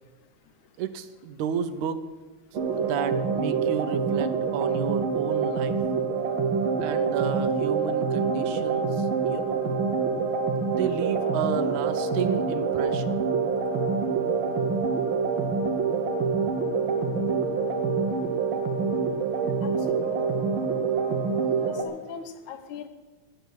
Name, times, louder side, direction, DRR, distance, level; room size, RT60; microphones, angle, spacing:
voice 1, 0.8-2.0 2.8-5.8 6.8-9.6 10.7-13.2, right 8 dB, 80° right, 11 dB, 2.1 m, -32 dB
sound 1, 2.5-21.8, right 5 dB, 60° right, 1.5 m, -26 dB
voice 2, 19.6-20.2 21.6-22.9, left 7 dB, 85° left, 9 dB, 2.4 m, -41 dB
17.0 x 6.8 x 6.3 m, 1.2 s
omnidirectional pair, 3.4 m